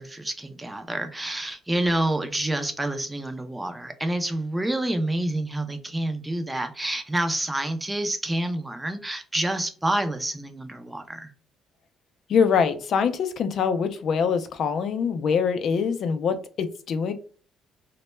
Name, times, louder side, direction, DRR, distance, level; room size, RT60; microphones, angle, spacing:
voice 1, 0.0-11.3, right 1 dB, 10° right, 0.4 m, -28 dB
voice 2, 12.3-17.1, left 6 dB, 55° left, 0.4 m, -24 dB
2.1 x 2.1 x 3.0 m
cardioid pair, 135°, 0 cm